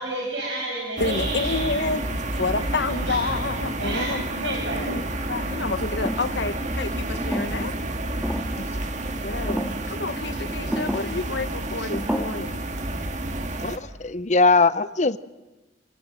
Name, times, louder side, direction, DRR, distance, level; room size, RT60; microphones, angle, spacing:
voice 1, 0.0-1.7 2.6-2.7 3.0-3.2 3.8-4.1 4.4-4.8, right 2 dB, 80° right, -2 dB, 6.2 m, -30 dB
voice 2, 1.0-2.1 2.4-7.8 9.2-12.6, left 3 dB, 70° left, 12 dB, 1.2 m, -29 dB
sound 1, 1.0-13.8, right 1 dB, 40° right, 1.9 m, -30 dB
sound 2, 6.0-6.4 7.1-7.8 8.2-8.6 9.5-9.8 10.7-11.2 11.9-12.3, equal, 5° right, 1.7 m, -29 dB
voice 3, 13.6-15.2, left 3 dB, 40° left, 15 dB, 0.8 m, -21 dB
29.0 x 19.5 x 7.7 m, 1.1 s
head